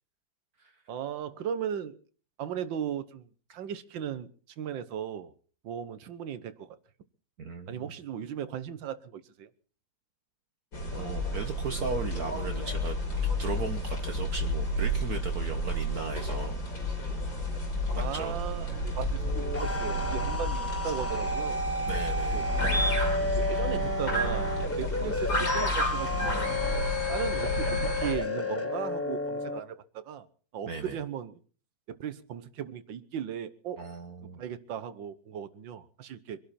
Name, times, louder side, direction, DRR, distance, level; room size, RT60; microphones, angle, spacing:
voice 1, 0.9-2.0 2.4-4.3 4.6-5.3 5.6-6.8 7.7-9.5 18.0-21.6 22.3-22.4 23.2-26.5 27.1-30.3 30.5-31.4 31.9-33.8 34.4-36.4, right 8 dB, 80° right, 13 dB, 1.7 m, -37 dB
voice 2, 7.4-7.9 10.9-13.0 13.4-16.6 17.9-18.4 21.9-22.5 30.6-31.0 33.8-34.4, right 4 dB, 55° right, 5 dB, 1.6 m, -36 dB
sound 1, 10.7-28.1, equal, 85° left, 5.9 m, -31 dB
sound 2, 19.2-29.6, left 1 dB, 10° left, 0.7 m, -32 dB
24.5 x 12.0 x 4.3 m, 0.42 s
omnidirectional pair, 2.0 m